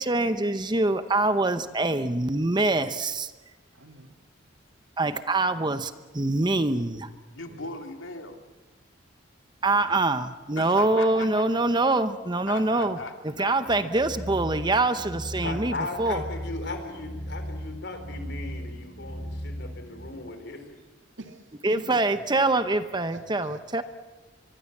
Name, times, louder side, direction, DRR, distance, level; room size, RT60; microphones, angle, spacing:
voice 1, 0.0-3.3 5.0-7.1 9.6-13.0 13.4-16.2 21.6-23.8, right 2 dB, 20° right, 11 dB, 0.8 m, -24 dB
voice 2, 3.7-4.2 7.5-7.7 9.6-9.9 12.6-12.7 13.4-14.6 21.2-22.2 23.1-23.8, right 2 dB, 70° right, 6 dB, 2.2 m, -47 dB
voice 3, 7.3-8.4 10.6-11.5 12.5-13.7, left 3 dB, 90° left, 4 dB, 2.6 m, -38 dB
sound 1, 13.7-20.1, equal, 15° left, 4.9 m, -37 dB
voice 4, 15.4-20.8, left 2 dB, 60° left, 7 dB, 4.0 m, -37 dB
24.0 x 23.0 x 7.3 m, 1.2 s
head